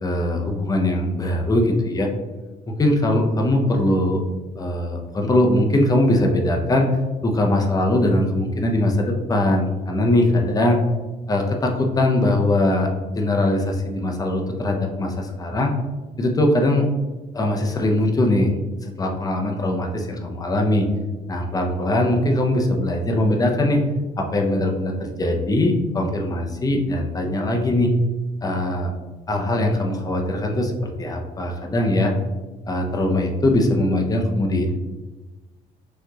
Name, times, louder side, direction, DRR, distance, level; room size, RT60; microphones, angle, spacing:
voice 1, 0.0-2.1 2.8-4.2 4.6-6.9 7.2-10.8 11.3-12.9 13.1-15.7 16.2-16.9 17.3-20.9 21.3-23.8 24.2-27.9 28.4-28.9 29.3-32.1 32.7-34.7, left 1 dB, 20° left, 2 dB, 0.7 m, -21 dB
6.2 x 2.9 x 2.4 m, 1.2 s
cardioid pair, 110°, 17 cm